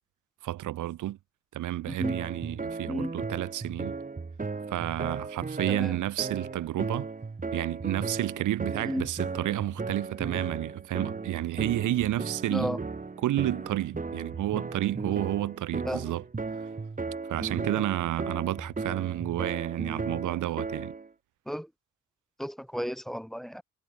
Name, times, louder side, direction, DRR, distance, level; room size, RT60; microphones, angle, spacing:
voice 1, 0.4-1.2 1.5-3.9 4.7-7.1 7.5-12.8 13.2-16.2 17.3-20.9, right 14 dB, 80° right, 4.2 m, -30 dB
voice 2, 1.9-2.2 2.9-3.1 5.7-6.0 8.8-9.1 12.5-12.8 15.8-16.1 21.5-21.7 22.4-23.6, equal, ahead, 4.1 m, -33 dB
sound 1, 2.0-21.1, right 4 dB, 25° right, 5.8 m, -36 dB
cardioid pair, 90°, 30 cm